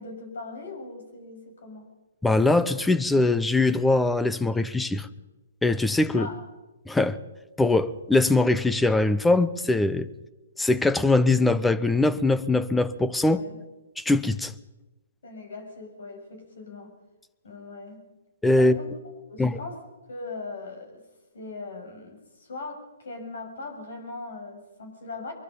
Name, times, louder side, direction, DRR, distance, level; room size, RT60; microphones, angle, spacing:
voice 1, 0.0-1.9 6.2-6.4 13.3-13.6 15.2-16.9 17.4-18.1 18.6-18.9 19.3-19.8 20.1-21.0 21.3-25.3, left 3 dB, 70° left, 7.2 m, -39 dB
voice 2, 2.2-5.1 5.6-6.3 6.9-7.2 7.6-10.1 10.6-13.4 14.0-14.5 18.4-18.7 19.4-19.6, left 2 dB, 5° left, 0.9 m, -22 dB
24.0 x 23.0 x 5.6 m
hypercardioid pair, 130°, 0 cm